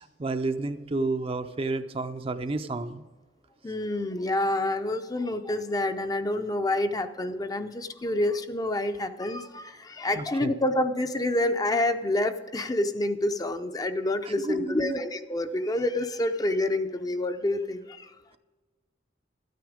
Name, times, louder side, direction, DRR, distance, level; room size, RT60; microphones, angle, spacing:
voice 1, 0.0-3.0 10.1-10.5 14.2-15.0, right 3 dB, 30° right, 9 dB, 0.5 m, -31 dB
voice 2, 3.6-18.1, left 1 dB, 20° left, 8 dB, 0.5 m, -28 dB
12.5 x 9.3 x 5.0 m, 1.3 s
head